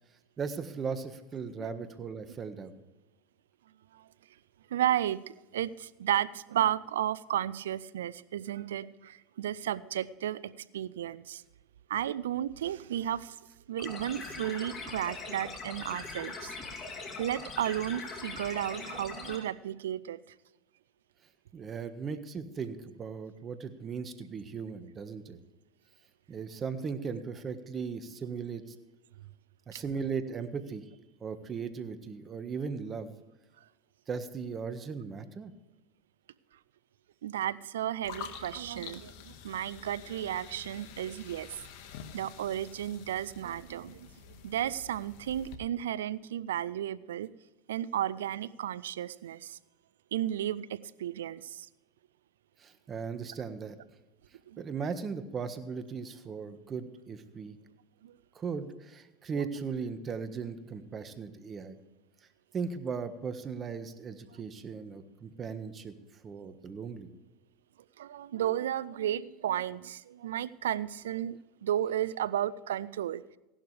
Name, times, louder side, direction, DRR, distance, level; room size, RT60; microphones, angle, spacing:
voice 1, 0.4-2.8 21.5-25.4 26.3-28.7 29.7-30.9 31.2-33.1 34.1-35.5 52.6-53.8 54.6-57.6 58.3-61.8 62.5-65.9 66.2-67.1, right 5 dB, 35° right, 10 dB, 1.4 m, -37 dB
voice 2, 4.7-11.4 11.9-13.4 13.7-16.6 17.2-20.2 29.7-29.8 37.2-41.6 42.1-44.1 44.4-47.3 47.7-49.6 50.1-51.7 54.5-54.6 58.0-58.2 59.3-59.5 68.0-73.2, right 11 dB, 90° right, 19 dB, 0.4 m, -33 dB
sound 1, 13.8-19.4, left 4 dB, 35° left, 2.8 m, -41 dB
sound 2, 38.0-45.6, left 7 dB, 70° left, 1.6 m, -48 dB
16.5 x 11.5 x 3.3 m, 1.0 s
hypercardioid pair, 95°, 0 cm